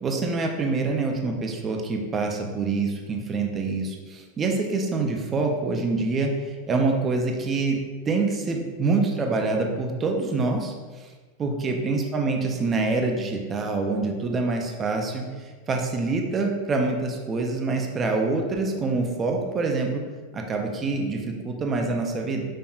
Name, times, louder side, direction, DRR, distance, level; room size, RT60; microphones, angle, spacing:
voice 1, 0.0-6.3 6.7-7.8 8.1-10.7 11.4-15.2 15.7-20.0 20.3-22.5, right 3 dB, 20° right, 2 dB, 0.4 m, -25 dB
5.3 x 2.8 x 2.3 m, 1.4 s
supercardioid pair, 160°, 0 cm